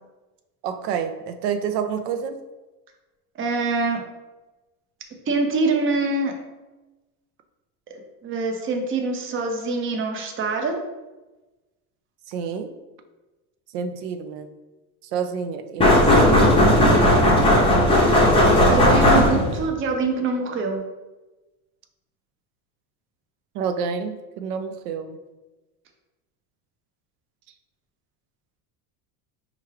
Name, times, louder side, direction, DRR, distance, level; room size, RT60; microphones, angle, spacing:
voice 1, 0.6-2.4 12.3-12.7 13.7-14.5 15.1-16.6 23.5-25.2, right 7 dB, 90° right, 7 dB, 0.5 m, -29 dB
voice 2, 3.4-4.0 5.3-6.3 7.9-10.8 18.7-20.8, right 3 dB, 30° right, 3 dB, 0.6 m, -24 dB
sound 1, 15.8-19.7, left 1 dB, 10° left, 0.6 m, -16 dB
4.4 x 2.4 x 3.1 m, 1.1 s
supercardioid pair, 120°, 46 cm